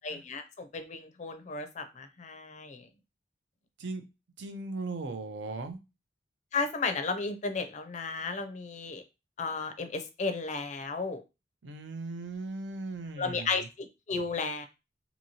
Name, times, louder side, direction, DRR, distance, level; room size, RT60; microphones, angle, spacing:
voice 1, 0.0-2.8 6.5-9.0 9.4-11.2 13.2-14.7, left 4 dB, 40° left, 8 dB, 0.4 m, -34 dB
voice 2, 4.4-5.8 11.6-13.7, right 3 dB, 75° right, 7 dB, 0.6 m, -38 dB
2.8 x 2.7 x 2.7 m, 0.26 s
head